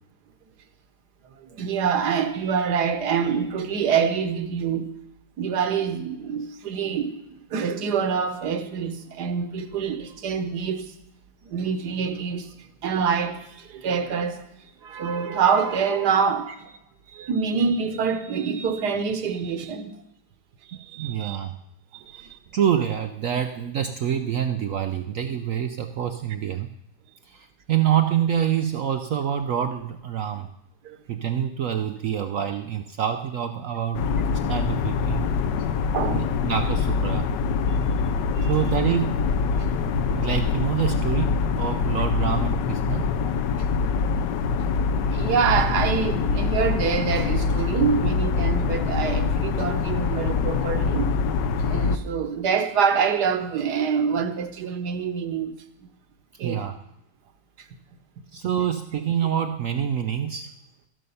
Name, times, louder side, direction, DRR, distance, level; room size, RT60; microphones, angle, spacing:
voice 1, 1.6-4.9 5.4-7.2 7.5-10.8 11.5-12.5 12.8-13.4 13.7-14.4 14.8-16.7 17.1-19.9 20.9-21.4 21.9-22.0 30.8-31.0 35.9-36.3 38.4-38.5 45.1-51.1 51.6-55.5 56.4-56.6, right 6 dB, 65° right, 1.4 m, -25 dB
voice 2, 20.7-21.5 22.1-26.7 27.2-30.5 31.1-35.4 36.1-37.3 38.5-39.2 39.6-39.7 40.1-43.0 56.4-56.7 58.3-60.5, right 9 dB, 80° right, 0.7 m, -26 dB
sound 1, 33.9-52.0, left 5 dB, 70° left, 1.3 m, -24 dB
13.5 x 11.0 x 5.5 m
omnidirectional pair, 2.1 m